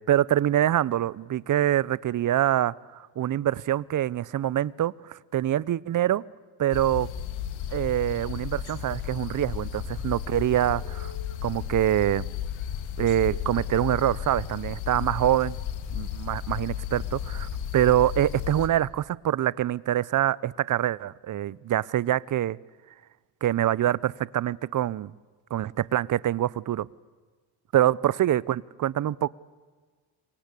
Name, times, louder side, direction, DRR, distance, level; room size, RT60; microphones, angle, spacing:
voice 1, 0.1-6.2 6.6-7.1 7.7-11.1 11.4-12.3 13.0-15.6 15.9-22.6 23.4-25.1 25.5-26.9 27.7-29.3, right 12 dB, 45° right, 22 dB, 0.8 m, -25 dB
sound 1, 6.7-18.7, left 9 dB, 80° left, 2.9 m, -34 dB
27.0 x 24.5 x 8.4 m, 1.4 s
cardioid pair, 115°, 45 cm